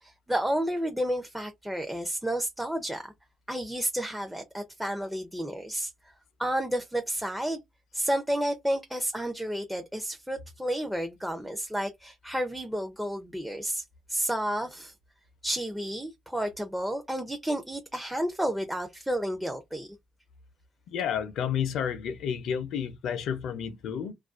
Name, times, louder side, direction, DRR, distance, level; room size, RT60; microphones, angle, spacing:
voice 1, 0.0-3.1 3.5-5.9 6.4-7.6 7.9-14.9 15.4-19.9, right 1 dB, 5° right, 0.4 m, -31 dB
voice 2, 20.9-24.1, left 8 dB, 80° left, 0.5 m, -31 dB
2.4 x 2.2 x 2.3 m
cardioid pair, 90°, 0 cm